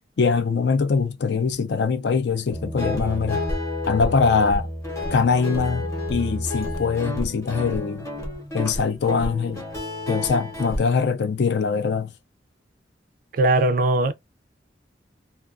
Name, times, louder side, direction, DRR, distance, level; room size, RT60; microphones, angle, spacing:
voice 1, 0.2-3.4 3.9-4.7 5.1-8.1 8.5-9.6 10.1-12.1, left 5 dB, 65° left, 0.4 m, -22 dB
Guitar, 2.5-10.8, left 1 dB, 15° left, 0.7 m, -30 dB
voice 2, 13.4-14.1, right 2 dB, 45° right, 0.3 m, -19 dB
2.3 x 2.3 x 2.3 m
head